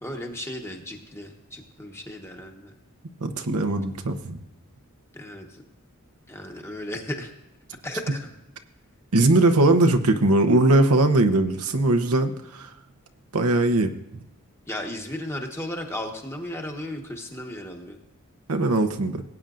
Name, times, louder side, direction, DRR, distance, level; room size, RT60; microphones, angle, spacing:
voice 1, 0.0-2.7 5.1-5.6 6.3-7.3 7.8-8.3 14.7-18.0, left 1 dB, 10° left, 2 dB, 1.2 m, -35 dB
voice 2, 3.2-4.4 9.1-12.7 13.3-14.2 18.5-19.2, right 2 dB, 80° right, 7 dB, 0.9 m, -20 dB
18.0 x 8.8 x 2.5 m, 0.91 s
head